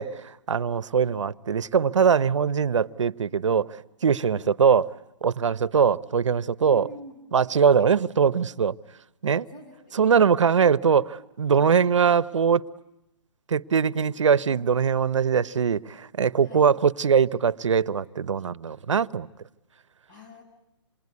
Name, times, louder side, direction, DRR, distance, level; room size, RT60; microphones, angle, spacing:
voice 1, 0.0-6.9 7.3-8.8 9.2-9.5 9.9-12.6 13.5-19.3, right 6 dB, 90° right, 0.9 m, -22 dB
voice 2, 6.7-7.6 9.5-10.2 14.1-14.7 16.4-16.7 20.1-20.4, equal, 40° left, 7.6 m, -47 dB
27.5 x 22.0 x 9.6 m
hypercardioid pair, 175°, 15 cm